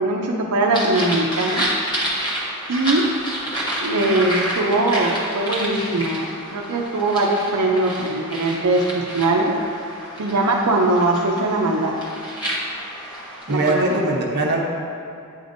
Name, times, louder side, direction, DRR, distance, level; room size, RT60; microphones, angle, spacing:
voice 1, 0.0-1.7 2.7-3.1 3.8-9.6 10.2-12.0 13.5-14.0, right 2 dB, 85° right, 0 dB, 0.5 m, -21 dB
sound 1, 0.7-13.9, right 1 dB, 20° left, 1.0 m, -29 dB
voice 2, 13.5-14.6, right 2 dB, 50° right, -1 dB, 0.8 m, -21 dB
8.7 x 5.1 x 2.6 m, 2.5 s
head